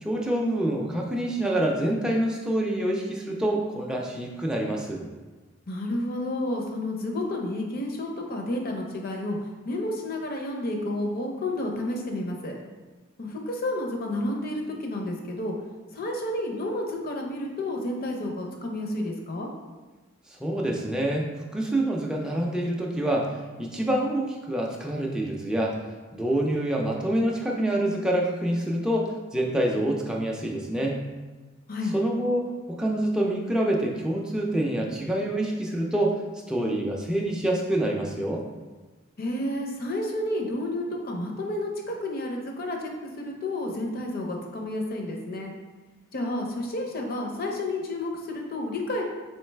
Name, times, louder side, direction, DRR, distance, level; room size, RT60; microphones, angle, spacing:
voice 1, 0.0-5.1 20.3-25.8 26.1-31.0 31.9-36.2 36.5-38.4, right 1 dB, 5° right, -1 dB, 0.3 m, -26 dB
voice 2, 5.7-9.4 9.7-12.6 13.2-15.5 15.9-19.5 31.7-31.9 39.2-45.5 46.1-49.0, left 1 dB, 45° left, 1 dB, 0.5 m, -30 dB
3.7 x 3.1 x 3.2 m, 1.3 s
head